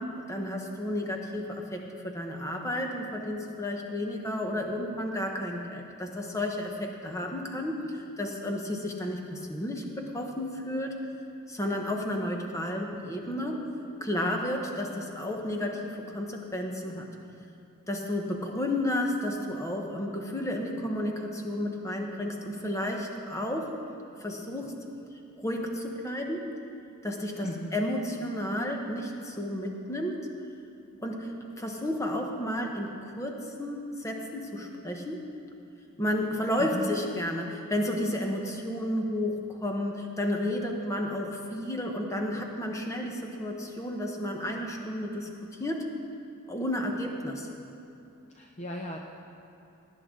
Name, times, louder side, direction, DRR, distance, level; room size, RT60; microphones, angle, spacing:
voice 1, 0.0-10.9 11.5-13.7 14.0-17.1 17.9-23.8 24.2-24.8 25.4-26.5 27.0-30.3 31.0-31.3 31.6-35.2 36.0-45.3 45.6-45.9 46.5-47.5, left 1 dB, 15° left, 2 dB, 1.1 m, -32 dB
voice 2, 27.4-27.8 36.6-36.9 48.3-49.0, left 1 dB, 30° left, 1 dB, 0.7 m, -36 dB
18.0 x 9.9 x 3.8 m, 2.8 s
head